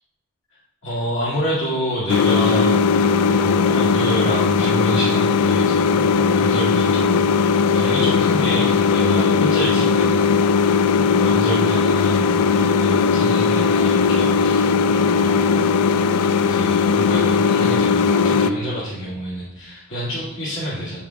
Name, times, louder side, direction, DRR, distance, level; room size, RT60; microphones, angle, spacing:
voice 1, 0.8-2.8 3.3-15.4 16.4-21.0, equal, 55° left, -10 dB, 2.4 m, -28 dB
sound 1, 2.1-18.5, left 5 dB, 85° left, 0.3 m, -18 dB
8.9 x 7.2 x 2.3 m, 0.87 s
head